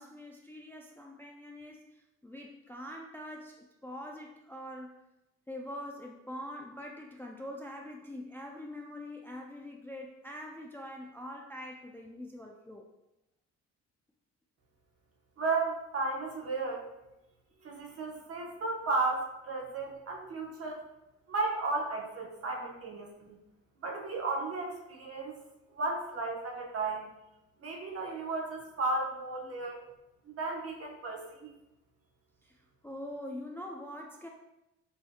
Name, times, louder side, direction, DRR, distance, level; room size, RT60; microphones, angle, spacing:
voice 1, 0.0-1.9 2.2-5.0 5.5-12.9 32.4-32.6 32.8-34.3, left 1 dB, 5° left, 0 dB, 0.3 m, -44 dB
voice 2, 15.4-16.8 17.6-20.8 21.3-23.4 23.8-25.4 25.7-27.1 27.6-29.8 30.2-31.5, right 3 dB, 50° right, 0 dB, 1.0 m, -34 dB
5.5 x 2.7 x 2.2 m, 0.92 s
cardioid pair, 90°, 30 cm